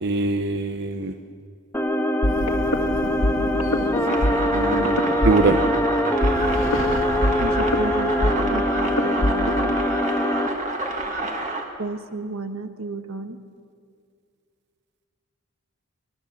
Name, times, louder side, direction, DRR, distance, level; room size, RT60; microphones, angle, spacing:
voice 1, 0.0-1.1 4.5-5.6, right 3 dB, 50° right, 7 dB, 0.9 m, -23 dB
sound 1, 1.7-10.5, equal, 10° left, 1.3 m, -23 dB
sound 2, 2.2-9.8, left 1 dB, 80° left, 2.0 m, -26 dB
sound 3, 4.0-11.6, right 2 dB, 35° right, 2.2 m, -29 dB
voice 2, 7.4-9.8 11.8-13.4, right 3 dB, 80° right, 8 dB, 1.4 m, -32 dB
24.5 x 21.0 x 7.4 m, 2.2 s
head